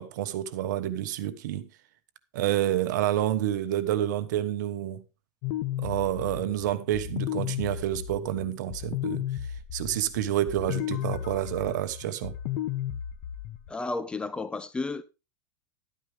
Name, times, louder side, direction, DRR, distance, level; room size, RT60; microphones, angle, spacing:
voice 1, 0.0-1.7 2.3-5.0 5.8-9.2 9.7-12.3, right 12 dB, 70° right, 1.2 m, -28 dB
sound 1, 5.4-13.7, left 12 dB, 55° left, 1.1 m, -34 dB
voice 2, 13.7-15.0, left 3 dB, 10° left, 0.6 m, -32 dB
12.5 x 9.3 x 3.5 m
supercardioid pair, 145°, 10 cm